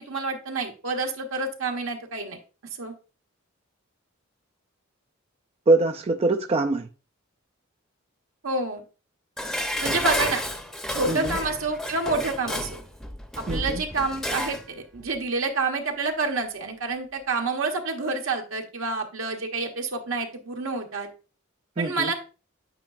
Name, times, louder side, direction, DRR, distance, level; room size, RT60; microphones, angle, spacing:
voice 1, 0.0-2.4 2.8-2.9 8.4-8.8 9.8-10.4 10.9-12.8 13.4-21.1 21.8-22.1, right 3 dB, 70° right, 1.3 m, -28 dB
voice 2, 5.7-6.9 11.1-11.4 13.5-13.8 21.8-22.1, right 2 dB, 30° right, 0.4 m, -23 dB
Dishes pots and pans, 9.4-14.7 15.0-15.1, left 1 dB, ahead, 0.8 m, -31 dB
8.9 x 4.9 x 2.5 m
head